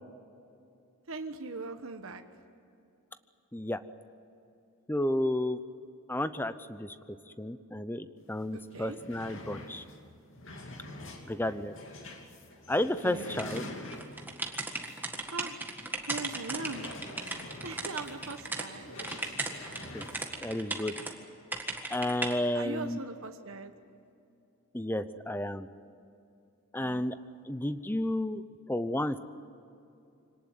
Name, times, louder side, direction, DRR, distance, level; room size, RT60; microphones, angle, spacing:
voice 1, 1.1-2.2 8.5-9.0 13.0-13.4 15.3-15.6 16.1-16.9 17.6-19.0 22.5-23.7 26.8-27.0, right 3 dB, 65° right, 6 dB, 1.2 m, -40 dB
voice 2, 4.9-5.6 6.1-7.0 7.4-9.8 11.3-11.7 12.7-13.6 19.9-20.0 20.4-20.9 21.9-23.0 24.7-25.7 26.7-27.2 27.5-29.2, left 1 dB, 10° left, 12 dB, 0.7 m, -32 dB
sound 1, 8.3-8.4 8.7-14.4 14.9-15.0 15.4-15.5 16.4-20.3, left 1 dB, 60° left, 2.8 m, -45 dB
sound 2, 13.4-18.7 19.0-21.1 21.5-22.3, right 2 dB, 10° right, 1.7 m, -37 dB
25.5 x 18.5 x 9.5 m, 2.6 s
head